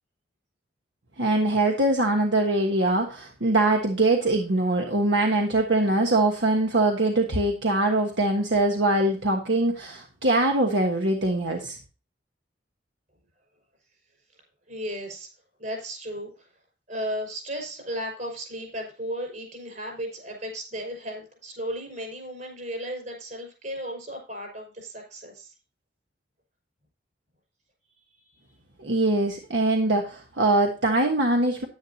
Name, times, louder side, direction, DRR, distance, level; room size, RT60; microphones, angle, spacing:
voice 1, 1.2-11.8 28.8-31.7, right 2 dB, 80° right, 2 dB, 1.3 m, -23 dB
voice 2, 14.7-15.3 15.6-16.5 16.9-25.5 27.9-28.4, equal, 45° right, 3 dB, 5.5 m, -35 dB
10.5 x 10.0 x 2.8 m, 0.32 s
head